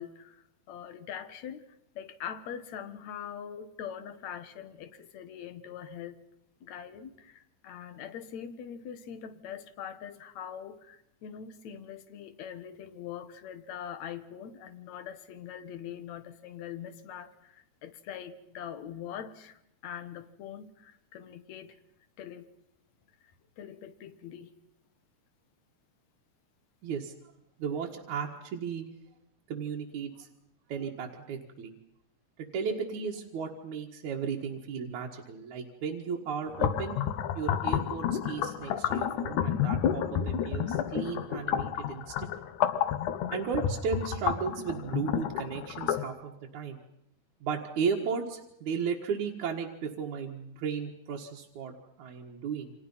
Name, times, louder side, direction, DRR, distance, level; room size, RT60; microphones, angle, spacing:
voice 1, 0.0-1.6 2.0-6.2 6.6-21.8 22.2-22.5 23.6-24.5, left 9 dB, 70° left, 10 dB, 2.6 m, -43 dB
voice 2, 26.8-27.1 27.6-28.8 29.5-30.3 30.7-31.7 32.4-37.0 37.3-42.3 43.3-46.8 47.4-52.7, right 6 dB, 75° right, 0 dB, 3.1 m, -35 dB
sound 1, 36.5-46.1, left 9 dB, 85° left, 2.6 m, -30 dB
29.5 x 26.0 x 5.6 m, 0.75 s
omnidirectional pair, 3.4 m